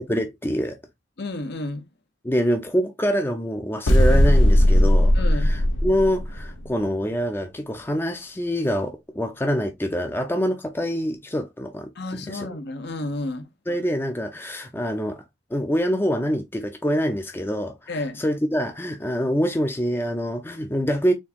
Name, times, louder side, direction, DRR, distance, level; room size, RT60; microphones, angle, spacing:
voice 1, 0.1-0.8 2.2-12.6 13.7-15.2 15.5-21.1, equal, 10° left, 0.5 m, -25 dB
voice 2, 1.2-1.9 5.1-5.5 12.0-13.5 17.9-18.2, left 2 dB, 65° left, 0.8 m, -31 dB
sound 1, 3.9-6.6, equal, 85° left, 0.9 m, -17 dB
4.4 x 3.4 x 2.8 m
head